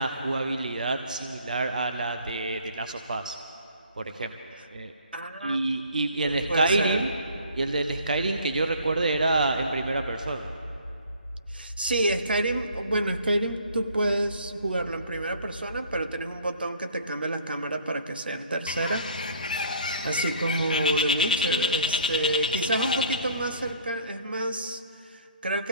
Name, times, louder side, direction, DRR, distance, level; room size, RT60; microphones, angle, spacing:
voice 1, 0.0-3.4 4.0-4.4 4.7-4.9 5.4-7.1 7.6-10.5, right 2 dB, 55° right, 6 dB, 0.6 m, -27 dB
voice 2, 5.1-5.6 6.2-7.0 11.5-19.1 20.0-25.7, right 1 dB, 75° right, 9 dB, 0.9 m, -29 dB
sound 1, 6.2-16.1, equal, 70° left, 1.3 m, -41 dB
Bird, 18.7-23.7, left 3 dB, 50° left, 0.9 m, -28 dB
23.0 x 15.5 x 3.6 m, 2.7 s
figure-of-eight pair, 175°, 5 cm